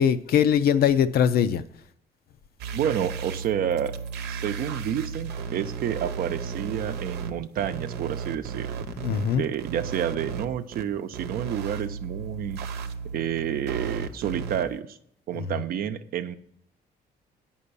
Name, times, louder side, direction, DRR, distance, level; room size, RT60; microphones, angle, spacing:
voice 1, 0.0-1.6 9.0-9.4 15.4-15.5, left 8 dB, 65° left, 0.6 m, -21 dB
sound 1, 2.6-7.3 7.6-10.4 10.7-10.8 11.1-14.6, right 6 dB, 80° right, 0.9 m, -34 dB
voice 2, 2.7-3.9 4.3-8.8 9.3-12.6 13.0-15.0 15.3-16.4, right 9 dB, 60° right, 0.7 m, -29 dB
8.7 x 5.6 x 6.9 m
cardioid pair, 110°, 17 cm